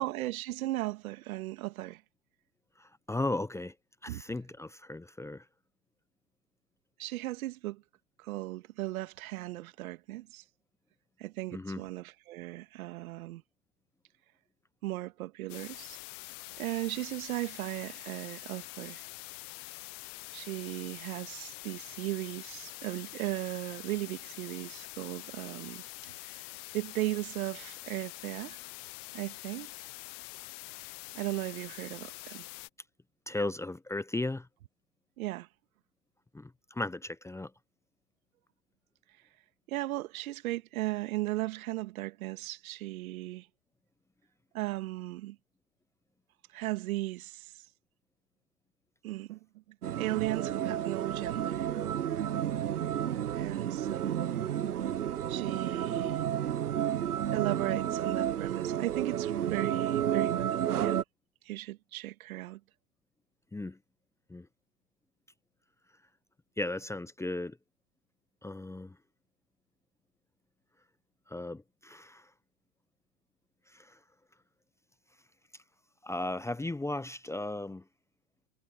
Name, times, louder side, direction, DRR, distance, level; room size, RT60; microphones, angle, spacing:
voice 1, 0.0-2.0 4.1-4.2 7.0-7.8 8.2-10.4 11.2-13.4 14.8-16.0 16.6-19.0 20.3-25.8 26.2-26.4 26.7-28.6 29.1-29.7 31.1-32.4 35.2-35.5 39.7-43.5 44.5-45.4 46.5-47.6 49.0-49.4 50.0-51.8 53.3-54.5 55.3-56.2 57.3-60.5 60.8-61.0 61.4-62.6, right 17 dB, 70° right, 2.2 m, -36 dB
voice 2, 2.8-3.7 4.0-5.4 11.5-11.8 33.3-34.5 36.3-37.5 63.5-63.8 64.3-64.5 66.6-67.6 68.4-68.9 71.3-72.3 73.7-74.0 76.0-77.8, left 2 dB, 5° left, 1.0 m, -36 dB
sound 1, 15.5-32.7, left 26 dB, 55° left, 0.9 m, -45 dB
sound 2, 49.8-61.0, right 10 dB, 90° right, 1.1 m, -31 dB
hypercardioid pair, 95°, 44 cm